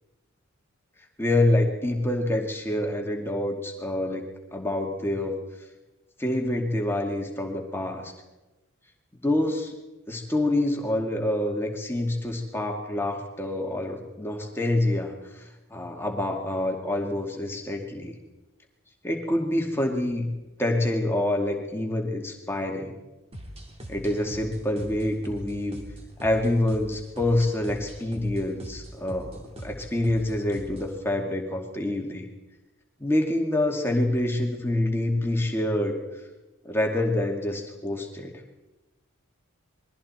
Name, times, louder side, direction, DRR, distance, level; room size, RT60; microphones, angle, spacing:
voice 1, 1.2-4.2 4.5-5.4 6.2-8.1 9.2-9.7 10.1-18.1 19.0-20.3 20.6-22.9 23.9-25.8 26.2-32.3 33.0-36.0 36.6-38.3, left 1 dB, 10° left, 1 dB, 2.3 m, -26 dB
sound 1, 23.3-31.0, equal, 25° right, 2.3 m, -42 dB
27.0 x 22.0 x 4.4 m, 1.1 s
head